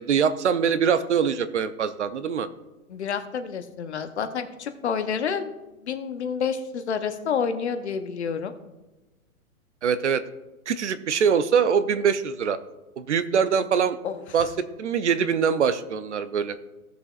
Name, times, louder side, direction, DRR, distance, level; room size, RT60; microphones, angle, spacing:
voice 1, 0.0-2.5 9.8-10.2 10.7-12.6 13.0-14.0 14.3-14.5 14.8-16.6, right 7 dB, 50° right, 13 dB, 0.6 m, -23 dB
voice 2, 2.9-5.5 5.8-8.5 14.0-14.2, left 6 dB, 50° left, 9 dB, 0.9 m, -29 dB
16.5 x 6.8 x 2.4 m, 1.1 s
hypercardioid pair, 165°, 44 cm